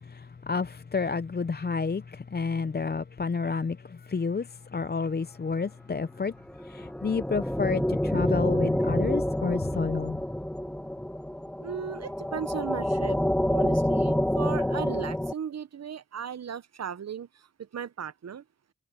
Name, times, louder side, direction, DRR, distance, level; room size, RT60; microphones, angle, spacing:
voice 1, 0.0-6.3 6.6-10.2, left 5 dB, 30° left, 0.7 m, -30 dB
sound 1, 6.5-15.3, left 1 dB, 5° left, 0.9 m, -28 dB
voice 2, 11.6-13.2 13.5-18.4, right 8 dB, 55° right, 0.9 m, -37 dB
cardioid pair, 50°, 32 cm